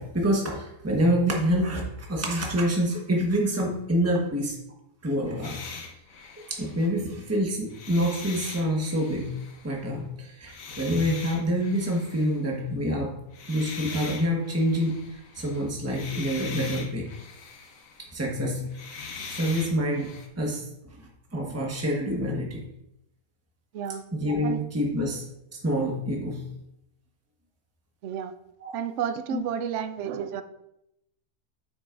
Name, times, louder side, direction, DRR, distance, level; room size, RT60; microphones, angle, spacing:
voice 1, 0.0-4.6 5.0-5.6 6.5-9.4 9.6-13.1 13.5-15.0 15.4-17.1 18.1-18.7 19.3-20.1 20.4-20.7 21.3-22.6 24.1-25.2 25.5-26.4 28.6-28.7 29.3-29.4, equal, 10° right, -1 dB, 1.2 m, -26 dB
sound 1, 5.4-7.3 7.7-9.8 10.5-12.4 13.3-18.2 18.6-20.3, left 5 dB, 65° left, 1.4 m, -41 dB
voice 2, 28.7-30.4, right 8 dB, 65° right, 11 dB, 0.8 m, -31 dB
9.5 x 7.2 x 2.6 m, 0.83 s
omnidirectional pair, 1.6 m